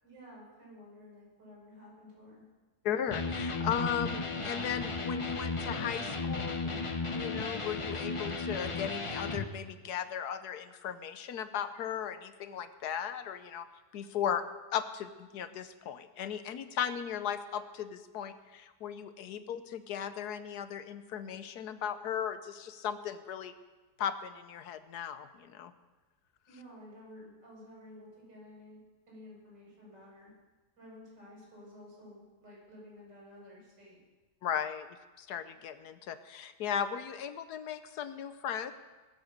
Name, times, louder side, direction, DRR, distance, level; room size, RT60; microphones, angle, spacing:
voice 1, 0.0-2.4 26.5-28.8 29.1-30.3 30.8-34.0, left 1 dB, 80° right, -5 dB, 7.1 m, -52 dB
voice 2, 2.8-6.7 7.1-13.7 13.9-14.4 14.7-23.5 24.0-25.7 34.4-34.9 35.2-38.7, left 8 dB, 70° left, 11 dB, 1.2 m, -36 dB
Electric guitar, 3.1-9.5, left 3 dB, 35° left, 0.5 m, -35 dB
20.0 x 8.2 x 6.6 m, 1.2 s
omnidirectional pair, 1.9 m